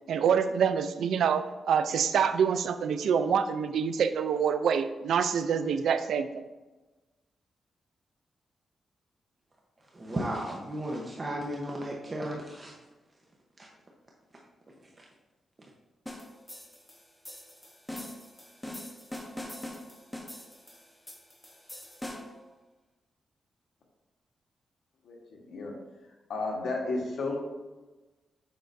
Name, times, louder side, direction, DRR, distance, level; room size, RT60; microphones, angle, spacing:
voice 1, 0.1-6.4, right 7 dB, 85° right, 10 dB, 0.4 m, -26 dB
voice 2, 9.9-12.7 15.0-15.1, right 1 dB, 30° right, -2 dB, 0.9 m, -34 dB
sound 1, 16.1-22.4, left 1 dB, 10° left, 1.0 m, -43 dB
voice 3, 25.0-25.7 26.3-27.4, left 3 dB, 80° left, 0 dB, 1.3 m, -33 dB
7.2 x 5.6 x 2.6 m, 1.2 s
cardioid pair, 85°, 0 cm